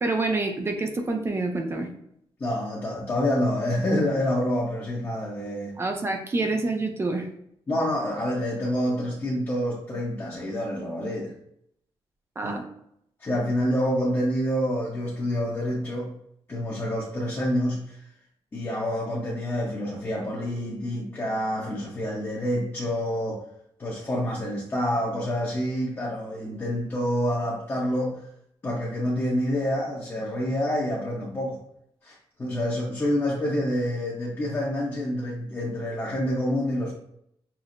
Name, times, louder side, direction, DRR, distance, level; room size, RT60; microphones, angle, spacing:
voice 1, 0.0-1.9 5.8-7.3 12.4-12.6, right 2 dB, 25° right, 4 dB, 0.4 m, -27 dB
voice 2, 2.4-5.8 7.7-11.3 12.4-12.5 13.2-16.1 16.5-18.0 18.5-23.4 23.8-28.2 28.6-31.6 32.0-36.9, equal, 25° left, -5 dB, 0.8 m, -27 dB
5.8 x 2.0 x 2.5 m, 0.73 s
wide cardioid pair, 155°, 10 cm